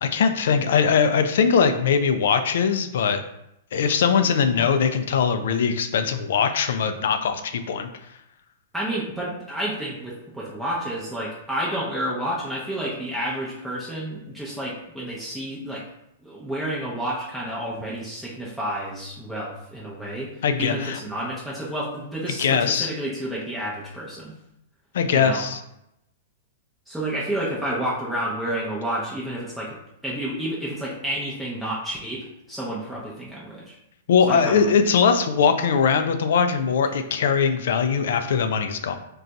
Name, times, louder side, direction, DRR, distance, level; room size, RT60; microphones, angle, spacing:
voice 1, 0.0-3.2 3.7-7.9 20.4-21.0 22.4-22.9 24.9-25.6 34.1-38.9, left 6 dB, 70° left, 8 dB, 0.3 m, -21 dB
voice 2, 4.5-4.9 8.7-15.8 16.2-20.3 20.6-24.3 25.1-25.5 26.9-29.8 30.0-33.7 34.3-34.7, right 1 dB, 5° right, -7 dB, 0.6 m, -30 dB
2.5 x 2.3 x 3.9 m, 0.81 s
hypercardioid pair, 125°, 0 cm